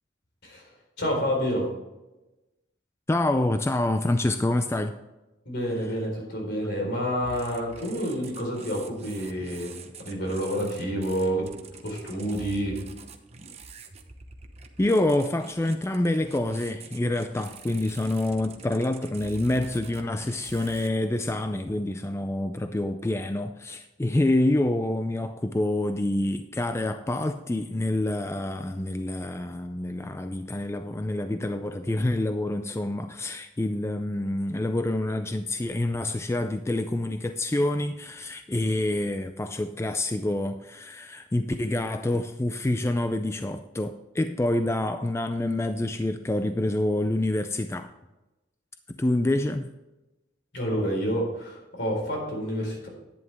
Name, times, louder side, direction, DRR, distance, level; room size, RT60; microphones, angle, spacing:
voice 1, 1.0-1.7 5.4-9.7 10.0-11.5 11.8-12.8 50.5-52.9, equal, 65° left, 4.2 m, -28 dB
voice 2, 3.1-4.9 14.8-47.9 48.9-49.7, left 1 dB, 15° left, 0.4 m, -27 dB
sound 1, 7.2-20.9, right 4 dB, 35° right, 1.0 m, -46 dB
11.0 x 9.5 x 3.5 m
head